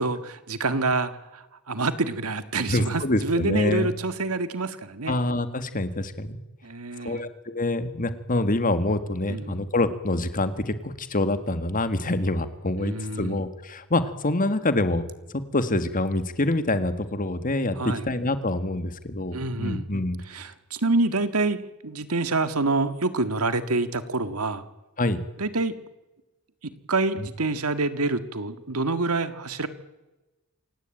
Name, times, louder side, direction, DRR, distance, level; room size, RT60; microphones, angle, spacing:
voice 1, 0.0-5.2 6.6-7.2 9.3-9.7 12.8-13.4 17.8-18.0 19.3-19.9 20.3-24.6 25.4-25.7 26.9-29.7, right 3 dB, 90° right, 11 dB, 1.8 m, -27 dB
voice 2, 2.7-3.9 5.1-6.4 7.0-15.0 15.5-20.2 25.0-25.2, left 2 dB, 40° left, 10 dB, 1.8 m, -26 dB
27.5 x 17.0 x 9.0 m, 1.1 s
head